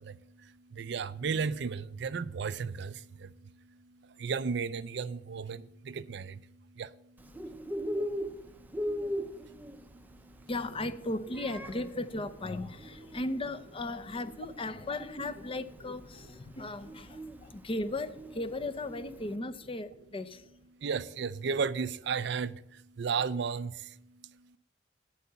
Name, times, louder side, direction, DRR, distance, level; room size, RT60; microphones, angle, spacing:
voice 1, 0.0-10.5 17.3-17.7 20.8-24.6, right 5 dB, 65° right, 0.5 m, -36 dB
Bird, 7.2-19.3, equal, 10° right, 0.6 m, -40 dB
voice 2, 10.5-20.5, left 2 dB, 30° left, 0.7 m, -36 dB
9.2 x 8.2 x 6.9 m
head